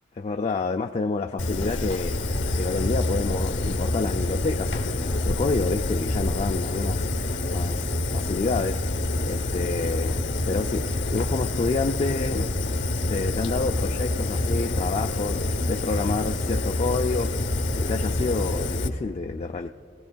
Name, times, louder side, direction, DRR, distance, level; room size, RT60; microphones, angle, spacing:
voice 1, 0.2-2.2 2.6-7.1 7.5-12.5 13.1-19.7, left 3 dB, 35° left, 4 dB, 0.3 m, -29 dB
Fire, 1.4-18.9, left 2 dB, 65° left, 0.9 m, -27 dB
28.5 x 18.5 x 2.2 m, 2.6 s
head